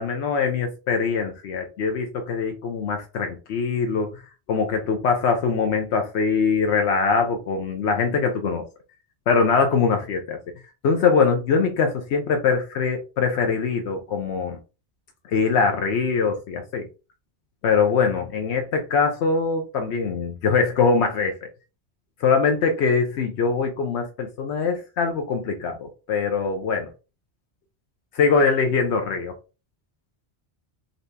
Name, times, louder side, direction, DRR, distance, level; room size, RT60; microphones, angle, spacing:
voice 1, 0.0-4.2 4.5-8.7 9.3-10.4 10.8-14.6 15.3-16.9 17.6-21.4 22.2-26.9 28.1-29.3, left 5 dB, 85° left, 0.9 m, -22 dB
3.9 x 2.7 x 3.3 m
omnidirectional pair, 1.1 m